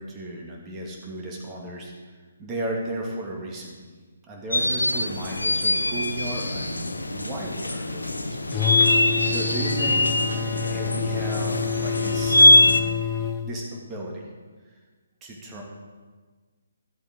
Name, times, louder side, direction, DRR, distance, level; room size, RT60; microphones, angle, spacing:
voice 1, 0.0-3.8 4.2-8.4 9.2-10.1 10.7-13.1 13.4-14.3 15.2-15.6, right 1 dB, 20° right, -2 dB, 2.1 m, -35 dB
sound 1, 4.5-12.8, left 2 dB, 80° left, 0.9 m, -22 dB
sound 2, 8.5-13.5, left 6 dB, 20° left, 1.0 m, -28 dB
13.5 x 7.8 x 3.8 m, 1.4 s
figure-of-eight pair, 140°, 0 cm